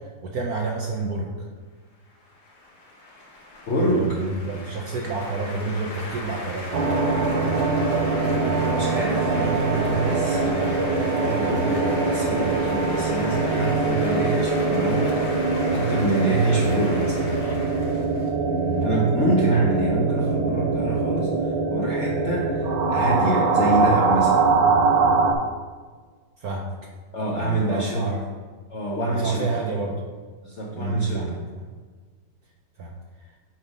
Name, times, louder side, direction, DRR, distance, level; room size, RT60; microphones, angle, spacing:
voice 1, 0.0-1.5 3.9-6.9 18.4-18.9 19.3-19.5 26.4-26.7 27.4-28.2 29.1-30.0 30.7-31.4 32.8-32.9, right 3 dB, 65° right, 0 dB, 0.9 m, -30 dB
sound 1, 2.2-18.8, left 2 dB, 45° left, 1.4 m, -37 dB
voice 2, 3.7-4.2 8.2-17.2 18.8-24.5 27.1-28.1 28.7-29.5 30.4-31.4, right 2 dB, 60° left, -3 dB, 0.7 m, -26 dB
sound 2, 6.7-25.3, right 3 dB, 85° right, 1.6 m, -23 dB
8.7 x 3.3 x 5.2 m, 1.5 s
omnidirectional pair, 2.3 m